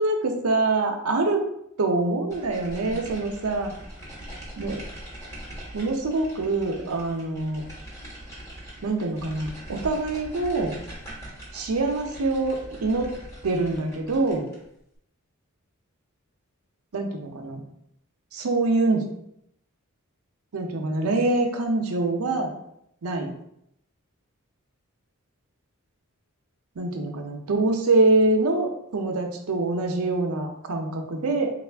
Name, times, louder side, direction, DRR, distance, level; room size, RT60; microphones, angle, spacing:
voice 1, 0.0-1.4 1.8-3.7 4.6-4.8 5.7-7.6 8.8-10.7 11.5-13.1 13.4-14.5 16.9-17.6 18.3-19.1 20.5-22.6 23.0-23.3 26.8-31.5, right 2 dB, 80° right, 3 dB, 0.6 m, -25 dB
sound 1, 2.3-14.6, right 1 dB, 15° left, 1.1 m, -42 dB
3.4 x 2.4 x 3.3 m, 0.75 s
head